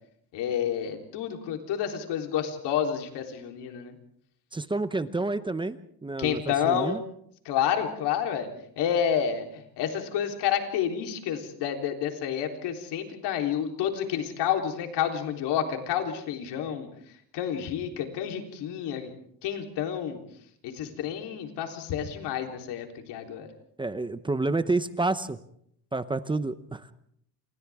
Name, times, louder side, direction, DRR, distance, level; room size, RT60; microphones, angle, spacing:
voice 1, 0.3-3.9 6.2-7.0 7.5-8.5 8.8-9.5 9.8-16.9 17.3-19.1 19.4-20.2 20.6-23.5, left 9 dB, 85° left, 3 dB, 3.8 m, -29 dB
voice 2, 4.5-7.0 23.8-25.4 25.9-26.9, right 3 dB, 10° right, 12 dB, 0.8 m, -29 dB
29.0 x 27.0 x 3.6 m, 0.67 s
cardioid pair, 145°, 40 cm